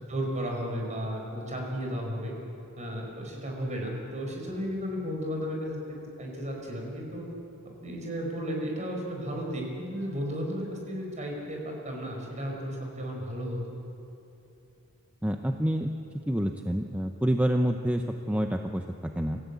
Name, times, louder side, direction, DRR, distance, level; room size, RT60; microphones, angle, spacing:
voice 1, 0.1-2.3 2.8-7.3 7.8-13.6, equal, 35° right, 0 dB, 5.2 m, -34 dB
voice 2, 15.2-15.9 16.3-19.4, equal, 5° right, 4 dB, 0.8 m, -28 dB
28.0 x 15.5 x 8.4 m, 2.8 s
head